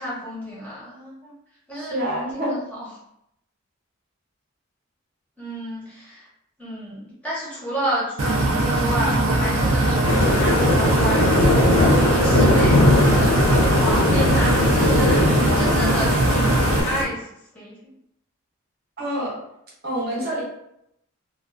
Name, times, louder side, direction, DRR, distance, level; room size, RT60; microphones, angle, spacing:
voice 1, 0.0-1.3 1.7-2.9 5.4-6.3 6.6-17.3 17.5-17.7, right 1 dB, 5° left, -8 dB, 0.6 m, -31 dB
voice 2, 1.7-2.6 19.0-19.4 19.8-20.4, equal, 45° right, -5 dB, 0.7 m, -27 dB
sound 1, 8.2-16.8, right 2 dB, 75° right, 0.5 m, -21 dB
sound 2, 10.0-17.0, left 2 dB, 85° left, 0.6 m, -20 dB
2.3 x 2.3 x 2.3 m, 0.79 s
head